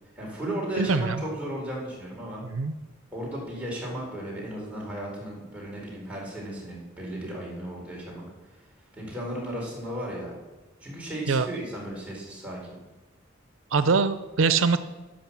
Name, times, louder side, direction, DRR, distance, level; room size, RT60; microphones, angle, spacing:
voice 1, 0.2-2.4 3.1-8.2 8.9-10.4 10.8-12.8, right 1 dB, 5° right, -4 dB, 4.4 m, -35 dB
voice 2, 0.8-1.2 2.4-2.7 11.3-11.5 13.7-14.8, right 4 dB, 85° right, 12 dB, 0.6 m, -23 dB
11.5 x 8.8 x 7.4 m, 1.1 s
head